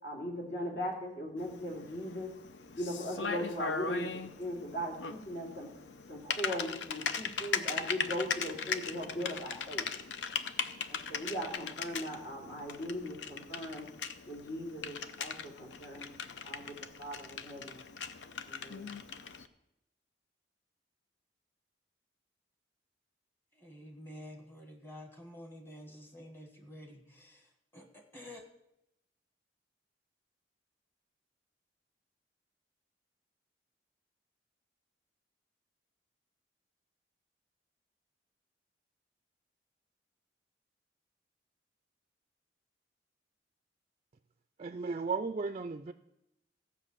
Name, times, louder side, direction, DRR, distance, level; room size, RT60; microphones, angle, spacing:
voice 1, 0.0-2.3 2.7-4.1 4.4-5.7 6.1-9.9 10.9-13.9 14.3-16.1 16.4-17.8 18.5-18.9, equal, 60° left, -2 dB, 3.1 m, -39 dB
Typing, 1.4-19.5, left 6 dB, 90° left, 0.7 m, -39 dB
voice 2, 23.6-27.4 27.7-28.4, left 1 dB, 15° left, 4 dB, 1.4 m, -49 dB
voice 3, 44.6-45.9, right 4 dB, 35° right, 10 dB, 0.4 m, -35 dB
14.5 x 5.8 x 7.4 m, 0.85 s
head